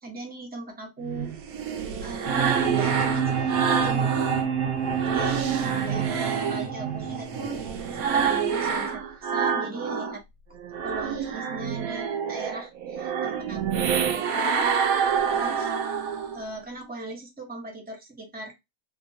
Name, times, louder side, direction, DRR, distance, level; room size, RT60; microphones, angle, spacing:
voice 1, 0.0-1.3 2.0-3.2 3.7-4.1 5.0-5.4 5.9-10.2 10.8-14.8 15.3-15.7 16.3-18.5, right 2 dB, 10° right, 0 dB, 0.5 m, -38 dB
sound 1, 1.0-4.4 4.8-10.2 10.6-16.4, right 7 dB, 70° right, 1.0 m, -28 dB
sound 2, 2.3-8.3, right 7 dB, 40° right, 0.9 m, -27 dB
2.8 x 2.5 x 2.6 m, 0.20 s
omnidirectional pair, 1.6 m